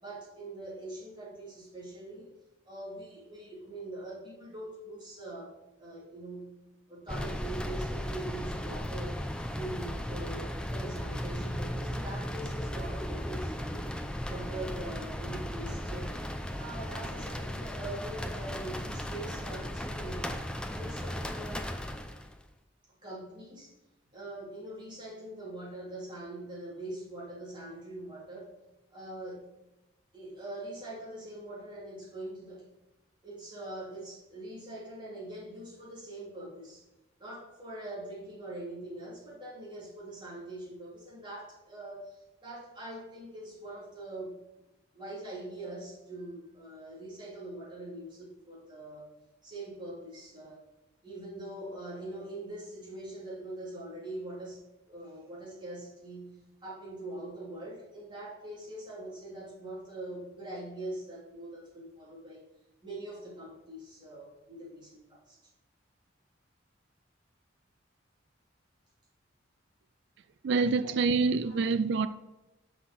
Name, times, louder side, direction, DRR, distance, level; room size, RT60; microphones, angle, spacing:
voice 1, 0.0-2.3 2.6-6.6 6.9-13.9 14.3-16.2 16.6-20.5 20.7-21.7 23.0-23.7 24.1-28.5 28.9-29.5 30.1-32.7 33.2-36.8 37.2-44.4 44.9-49.1 49.4-50.6 51.0-62.4 62.8-65.4 70.8-70.9 71.4-71.6, right 1 dB, 25° right, 2.9 m, -43 dB
sound 1, 7.1-22.4, equal, 5° left, 0.5 m, -36 dB
voice 2, 70.4-72.1, right 4 dB, 60° right, 0.3 m, -26 dB
6.0 x 5.9 x 6.0 m
head